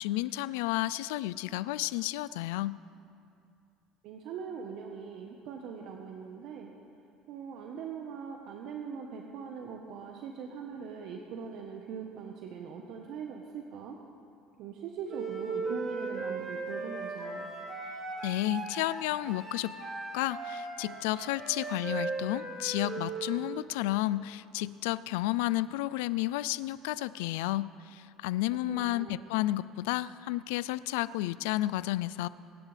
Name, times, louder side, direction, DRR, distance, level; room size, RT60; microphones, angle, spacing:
voice 1, 0.0-2.8 18.2-19.7 20.1-32.3, left 16 dB, 85° left, 18 dB, 0.3 m, -32 dB
voice 2, 4.0-6.7 7.3-14.0 14.6-17.5 28.7-29.2, right 6 dB, 65° right, 2 dB, 1.1 m, -41 dB
Wind instrument woodwind instrument, 15.1-23.4, right 3 dB, 35° right, 3.4 m, -37 dB
24.5 x 11.0 x 3.4 m, 2.5 s
supercardioid pair, 100°, 0 cm